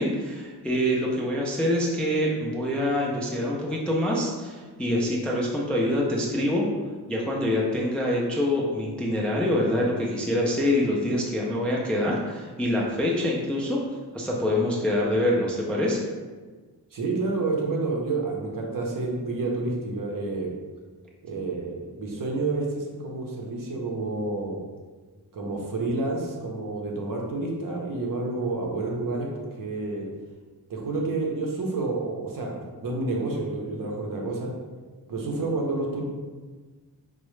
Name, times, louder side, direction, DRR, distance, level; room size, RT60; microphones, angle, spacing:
voice 1, 0.0-6.7 7.1-13.8 14.1-16.0, left 1 dB, 5° left, -3 dB, 0.3 m, -25 dB
voice 2, 16.9-20.5 21.2-24.6 25.3-30.1 30.7-34.5 35.1-36.0, right 3 dB, 55° right, -1 dB, 0.7 m, -29 dB
4.5 x 2.0 x 3.1 m, 1.4 s
wide cardioid pair, 145°, 40 cm